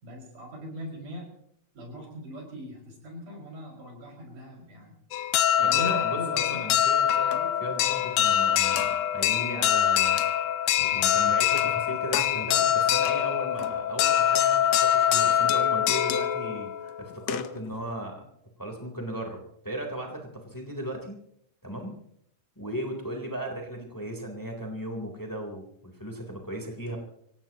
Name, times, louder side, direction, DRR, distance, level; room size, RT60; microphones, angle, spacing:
voice 1, 0.0-1.3 1.7-5.0 5.6-6.8, equal, 80° right, 0 dB, 7.2 m, -40 dB
sound 1, 5.1-17.7, left 10 dB, 70° left, 1.7 m, -24 dB
voice 2, 5.6-10.2 10.8-18.2 18.6-19.4 19.6-21.2 21.6-22.0 22.5-27.0, right 1 dB, 5° left, 2 dB, 3.3 m, -36 dB
25.5 x 18.0 x 3.0 m, 0.70 s
omnidirectional pair, 3.5 m